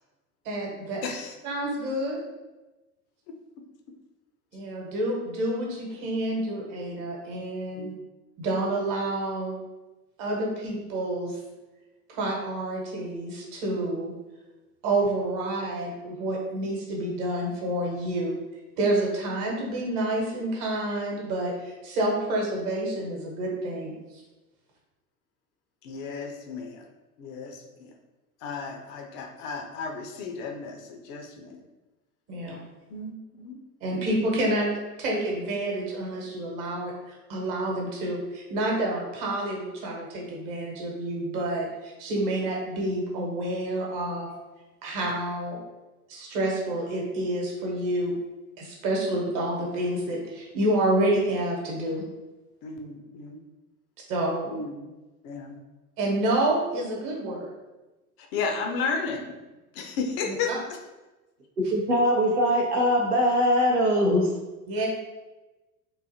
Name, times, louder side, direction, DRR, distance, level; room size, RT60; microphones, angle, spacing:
voice 1, 0.4-1.0 1.4-2.2 4.5-7.9 8.4-9.6 10.2-11.4 12.1-14.1 14.8-18.4 18.8-24.2 32.3-32.6 33.8-34.7 35.0-44.3 44.8-45.6 46.1-48.1 48.6-52.0 54.1-54.6 56.0-57.5 60.2-60.6 64.7-64.9, right 1 dB, 45° right, -2 dB, 1.1 m, -28 dB
voice 2, 1.0-1.3 7.8-7.9 25.8-26.8 27.2-27.9 28.4-31.6 32.9-33.6 34.0-34.1 52.6-53.4 54.5-54.9 55.2-55.6 58.3-59.4 59.7-60.5, left 4 dB, 30° left, 3 dB, 0.3 m, -33 dB
voice 3, 61.7-64.3, equal, 90° right, -2 dB, 0.7 m, -22 dB
3.8 x 2.6 x 2.6 m, 1.1 s
figure-of-eight pair, 75°, 46 cm